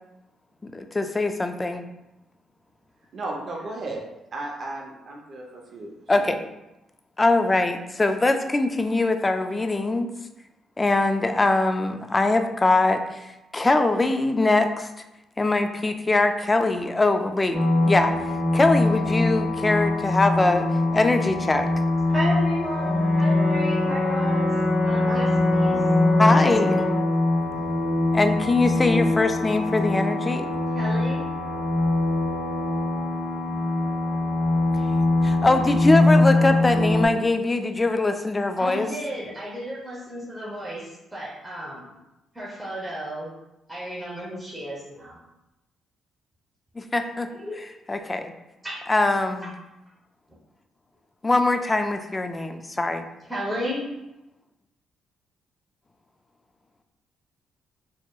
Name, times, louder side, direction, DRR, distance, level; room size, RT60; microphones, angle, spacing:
voice 1, 0.6-1.9 6.1-6.4 7.2-10.1 10.8-14.9 15.4-17.6 17.8-18.1 18.5-20.7 20.9-21.7 26.2-26.9 28.1-30.5 35.2-38.9 46.8-47.3 47.9-48.3 48.9-49.5 51.2-53.1, left 2 dB, 20° left, 7 dB, 0.3 m, -22 dB
voice 2, 3.1-4.0 4.3-6.4 25.1-25.2, right 2 dB, 50° right, -1 dB, 0.7 m, -35 dB
sound 1, 17.5-37.1, left 2 dB, 40° left, 0.8 m, -23 dB
voice 3, 22.1-24.5 24.8-25.3 25.6-25.8 30.7-31.2 38.6-41.9 42.3-43.3 43.7-45.2 47.3-47.6 48.6-48.8 53.3-53.9, equal, 5° right, -7 dB, 0.9 m, -33 dB
Brass instrument, 22.8-27.1, left 1 dB, 60° left, 1.4 m, -26 dB
4.3 x 2.9 x 2.4 m, 0.94 s
cardioid pair, 90°, 0 cm